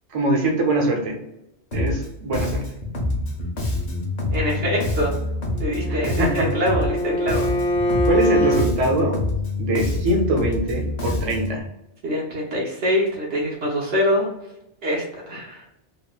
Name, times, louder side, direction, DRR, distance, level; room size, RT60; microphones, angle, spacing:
voice 1, 0.1-1.2 1.7-2.6 5.9-6.5 8.1-9.2 9.6-11.6, right 1 dB, 40° right, 1 dB, 0.6 m, -23 dB
Bass guitar, 1.7-2.1 2.3-7.0 7.3-11.6, left 2 dB, 45° left, 0.7 m, -26 dB
voice 2, 4.3-5.1 5.6-7.5 12.0-14.3 14.8-15.6, equal, 80° right, -4 dB, 1.1 m, -24 dB
Bowed string instrument, 5.5-8.7, equal, 85° left, 1.0 m, -24 dB
3.7 x 2.0 x 2.3 m, 0.87 s
omnidirectional pair, 1.2 m